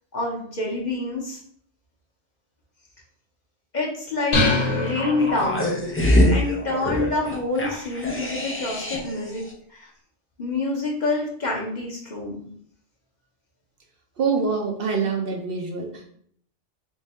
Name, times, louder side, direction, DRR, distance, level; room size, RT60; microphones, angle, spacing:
voice 1, 0.1-1.4 3.7-5.7 6.3-9.4 9.7-9.9 10.4-12.4, left 2 dB, 45° left, -2 dB, 0.9 m, -27 dB
sound 1, 4.3-5.9, left 2 dB, 75° left, 1.2 m, -24 dB
sound 2, 4.8-9.2 9.5-9.6, left 1 dB, 20° left, 0.3 m, -24 dB
voice 2, 14.2-16.0, right 5 dB, 60° right, 2 dB, 0.8 m, -25 dB
3.6 x 2.6 x 4.1 m, 0.63 s
omnidirectional pair, 1.1 m